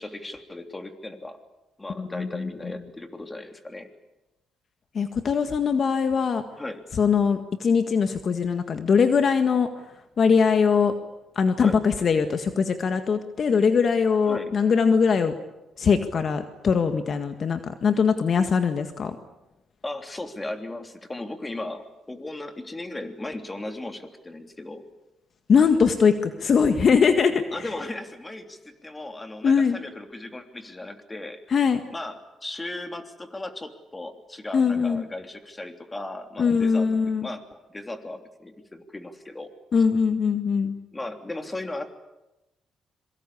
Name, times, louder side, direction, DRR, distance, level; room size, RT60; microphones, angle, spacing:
voice 1, 0.0-1.4 1.8-3.9 6.6-6.8 11.6-11.8 14.3-14.5 19.8-24.8 27.5-31.4 31.9-36.9 37.2-39.5 40.9-41.9, left 2 dB, 15° left, 7 dB, 3.3 m, -36 dB
voice 2, 2.0-2.5 4.9-6.4 6.9-9.7 10.2-10.9 11.4-15.3 15.8-19.2 25.5-27.4 29.4-29.8 31.5-31.8 34.5-35.0 36.4-37.3 39.7-40.8, left 6 dB, 50° left, 8 dB, 1.8 m, -21 dB
26.0 x 23.5 x 8.6 m, 0.97 s
cardioid pair, 90°, 0 cm